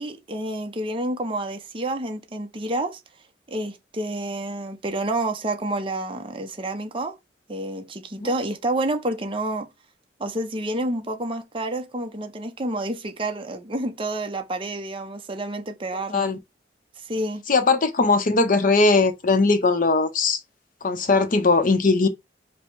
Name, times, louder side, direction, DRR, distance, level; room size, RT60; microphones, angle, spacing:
voice 1, 0.0-3.0 3.5-7.2 7.5-9.7 10.2-16.3 17.1-17.4, right 1 dB, 30° right, 0.7 m, -29 dB
voice 2, 17.5-20.4 20.8-22.1, left 3 dB, 50° left, 0.7 m, -19 dB
5.2 x 2.2 x 4.6 m
head